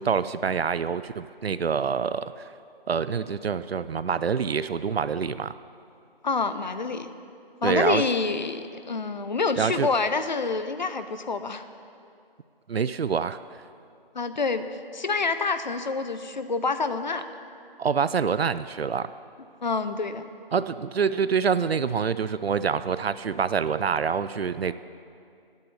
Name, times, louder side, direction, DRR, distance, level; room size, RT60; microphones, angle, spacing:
voice 1, 0.0-2.4 2.9-5.5 7.6-8.0 9.6-9.9 12.7-13.4 17.8-19.1 20.5-24.7, right 6 dB, 85° right, 14 dB, 0.5 m, -26 dB
voice 2, 6.2-7.1 7.6-11.6 14.1-14.7 14.9-17.3 19.6-20.3, left 4 dB, 50° left, 10 dB, 0.7 m, -27 dB
9.3 x 8.3 x 9.3 m, 2.4 s
figure-of-eight pair, 160°, 30 cm